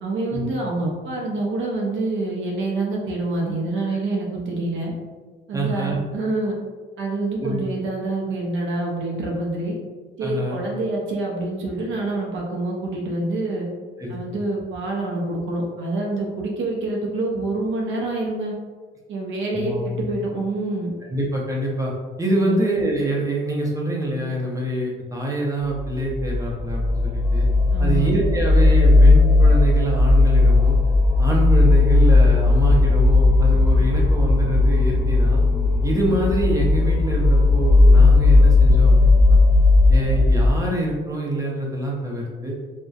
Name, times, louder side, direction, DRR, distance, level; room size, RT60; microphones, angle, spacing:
voice 1, 0.0-4.9 5.5-6.6 7.0-9.7 10.2-13.7 14.1-18.5 19.1-20.9 22.4-22.6 27.7-28.1, right 2 dB, 75° right, -2 dB, 0.5 m, -26 dB
voice 2, 5.5-6.0 7.4-7.6 10.2-10.6 14.0-14.2 19.5-20.0 21.1-21.9 22.2-27.5 27.8-30.8 31.2-35.4 35.8-39.4 39.9-42.6, right 1 dB, 15° right, -2 dB, 0.6 m, -25 dB
sound 1, 25.8-40.5, left 2 dB, 45° right, 0.9 m, -16 dB
2.7 x 2.1 x 2.3 m, 1.4 s
cardioid pair, 90°, 20 cm